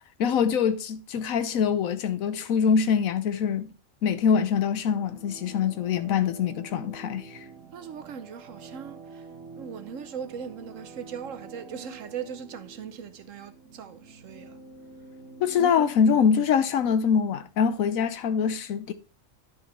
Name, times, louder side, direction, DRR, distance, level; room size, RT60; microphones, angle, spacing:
voice 1, 0.2-3.7 4.0-7.4 15.4-18.9, left 7 dB, 90° left, 1.2 m, -24 dB
sound 1, 4.8-17.2, right 4 dB, 85° right, 1.6 m, -48 dB
voice 2, 7.7-9.3 9.5-14.6 15.5-15.9, right 7 dB, 70° right, 1.2 m, -39 dB
11.0 x 4.0 x 4.4 m
omnidirectional pair, 1.4 m